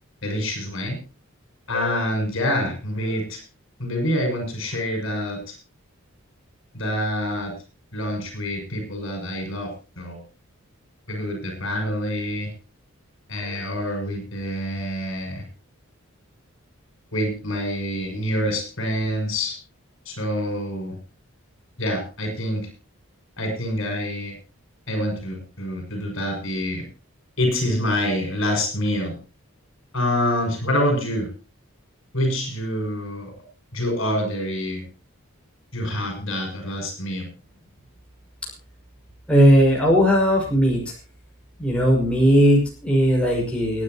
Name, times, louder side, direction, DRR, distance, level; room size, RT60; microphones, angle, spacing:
voice 1, 0.2-1.0 1.7-3.4 3.8-5.5 6.7-7.5 7.9-9.7 10.0-10.2 11.1-12.5 13.3-15.4 17.1-19.6 20.0-20.9 21.8-22.7 23.4-24.3 24.9-26.8 27.4-29.1 29.9-31.3 32.1-33.3 33.7-34.8 35.7-37.3, left 1 dB, 60° left, 4 dB, 6.7 m, -26 dB
voice 2, 39.3-40.8 41.6-43.8, equal, 5° left, -3 dB, 6.0 m, -17 dB
29.0 x 9.8 x 3.0 m, 0.33 s
head